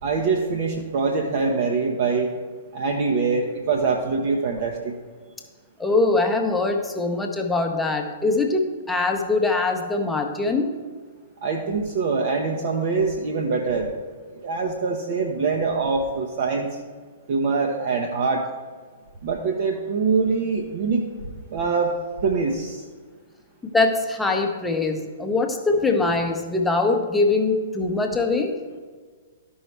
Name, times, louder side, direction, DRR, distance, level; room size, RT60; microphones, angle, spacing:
voice 1, 0.0-2.3 2.7-4.9 11.4-13.9 14.3-16.7 17.3-18.4 19.2-21.1 21.5-21.9 22.2-22.8, right 4 dB, 45° right, 1 dB, 0.8 m, -24 dB
voice 2, 5.8-10.8 23.7-28.6, left 3 dB, 5° left, 3 dB, 0.8 m, -22 dB
13.0 x 5.5 x 3.3 m, 1.5 s
figure-of-eight pair, 110°, 0 cm